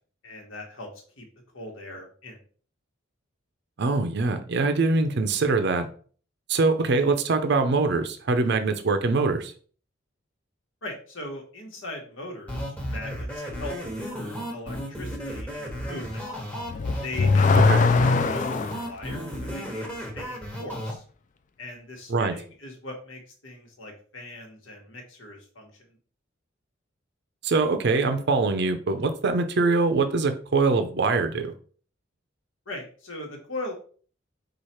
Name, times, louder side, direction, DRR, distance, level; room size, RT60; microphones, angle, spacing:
voice 1, 0.2-0.9 1.2-1.3 1.5-2.4 10.8-13.7 14.0-16.2 17.0-21.0 21.6-26.0 32.7-33.7, left 1 dB, 80° left, 2 dB, 1.3 m, -39 dB
voice 2, 3.8-5.9 6.5-9.5 17.7-17.8 22.1-22.3 27.4-31.5, right 3 dB, 60° right, 8 dB, 0.5 m, -23 dB
sound 1, 12.5-20.9, equal, 5° left, 1.0 m, -34 dB
Car / Accelerating revving vroom, 16.6-18.9, left 4 dB, 40° left, 0.3 m, -20 dB
4.7 x 2.5 x 4.3 m, 0.43 s
head